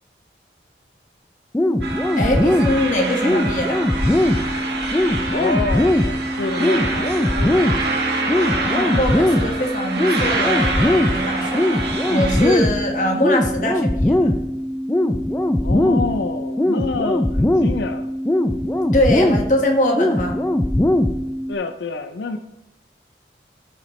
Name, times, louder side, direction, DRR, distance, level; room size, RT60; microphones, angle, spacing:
sound 1, 1.5-21.5, left 1 dB, 10° left, 0.3 m, -20 dB
sound 2, 1.8-12.6, right 3 dB, 75° right, 1.6 m, -26 dB
voice 1, 2.1-3.8 8.6-14.3 18.9-20.4, left 1 dB, 45° left, 1 dB, 1.5 m, -22 dB
voice 2, 5.3-7.7 15.6-18.1 21.5-22.4, left 3 dB, 85° left, 8 dB, 0.4 m, -27 dB
12.5 x 5.8 x 3.1 m, 0.88 s
head